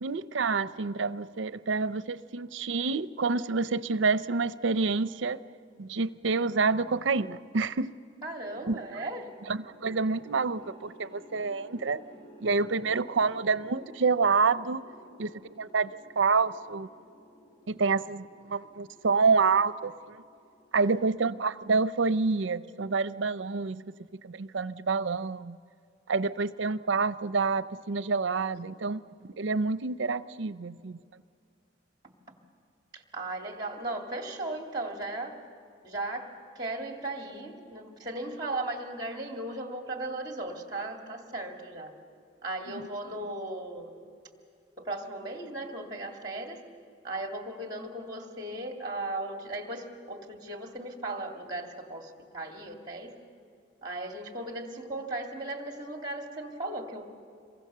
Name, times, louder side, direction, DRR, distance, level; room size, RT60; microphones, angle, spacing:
voice 1, 0.0-5.4 5.8-7.9 8.7-8.8 9.5-12.0 12.4-14.8 15.2-16.9 17.7-20.2 20.7-23.9 24.2-25.6 26.1-29.0 29.4-31.0, right 4 dB, 75° right, 14 dB, 0.6 m, -28 dB
voice 2, 8.2-9.4 20.7-20.9 32.9-35.4 35.8-41.9 42.4-44.0 44.8-46.6 47.0-53.2 53.8-57.1, right 2 dB, 20° right, 3 dB, 2.4 m, -37 dB
sound 1, 9.2-21.6, equal, 30° left, 5.7 m, -54 dB
27.5 x 23.0 x 6.8 m, 2.4 s
head